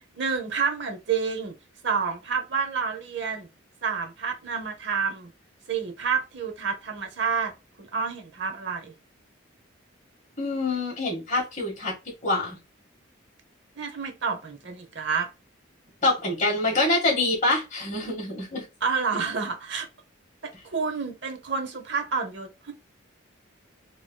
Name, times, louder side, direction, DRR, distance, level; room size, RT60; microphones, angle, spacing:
voice 1, 0.0-1.5 1.8-3.5 3.8-5.3 5.7-7.5 7.8-8.9 13.8-15.3 18.8-19.9 20.4-22.7, right 5 dB, 60° right, 0.9 m, -29 dB
voice 2, 10.4-12.0 12.2-12.6 16.0-18.6, left 2 dB, 35° left, 1.8 m, -25 dB
4.6 x 3.0 x 2.3 m
head